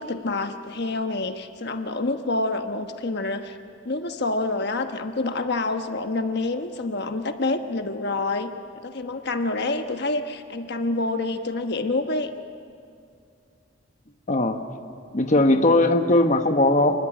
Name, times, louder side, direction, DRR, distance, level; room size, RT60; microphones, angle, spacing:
voice 1, 0.0-3.6 3.8-8.5 8.8-12.3 15.3-15.7, left 2 dB, 60° left, 6 dB, 1.2 m, -27 dB
voice 2, 14.3-14.6 15.1-17.0, left 2 dB, 40° left, 6 dB, 1.2 m, -19 dB
28.5 x 20.0 x 8.7 m, 2.4 s
head